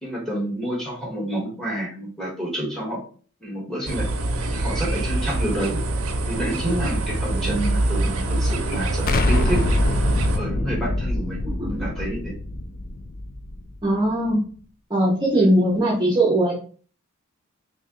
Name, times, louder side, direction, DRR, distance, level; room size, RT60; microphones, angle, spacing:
voice 1, 0.0-3.0 3.4-4.1 4.5-5.8 6.3-9.6 10.4-11.4 11.7-12.3, right 1 dB, ahead, -2 dB, 1.4 m, -29 dB
sound 1, 3.9-10.4, right 2 dB, 85° right, 0.6 m, -25 dB
voice 2, 7.3-7.8 11.6-11.9 13.8-14.4 14.9-16.5, right 1 dB, 20° right, -4 dB, 0.7 m, -20 dB
Explosion, 9.1-13.9, left 2 dB, 40° left, 0.3 m, -24 dB
3.2 x 2.7 x 3.7 m, 0.42 s
head